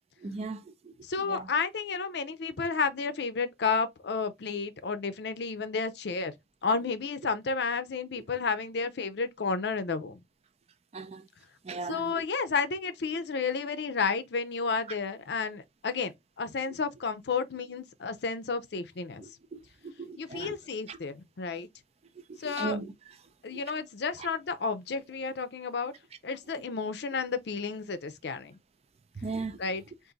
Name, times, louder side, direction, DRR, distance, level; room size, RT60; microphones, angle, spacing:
voice 1, 0.2-0.9 1.3-1.5 10.9-11.3 11.6-12.2 19.2-20.6 20.9-21.0 22.3-22.9 23.5-23.6 24.2-24.3 29.2-29.6, right 3 dB, 35° right, 0.5 m, -38 dB
voice 2, 1.0-6.3 6.6-10.2 11.9-16.1 16.4-19.2 20.2-21.7 22.4-22.8 23.4-25.9 26.2-28.6 29.6-29.8, left 4 dB, 65° left, 0.5 m, -31 dB
4.0 x 2.6 x 3.7 m
head